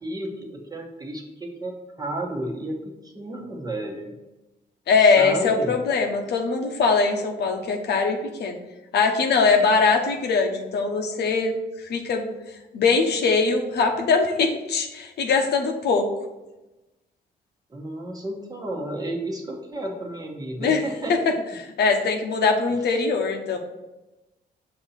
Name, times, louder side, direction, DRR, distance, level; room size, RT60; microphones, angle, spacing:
voice 1, 0.0-4.1 5.0-5.7 17.7-21.1 22.7-22.8, right 1 dB, 20° right, 0 dB, 1.1 m, -32 dB
voice 2, 4.9-8.6 8.9-12.3 12.7-16.1 20.6-20.8 21.1-21.2 21.6-23.6, left 4 dB, 75° left, 4 dB, 0.8 m, -21 dB
6.3 x 2.9 x 5.5 m, 1.0 s
cardioid pair, 120°, 17 cm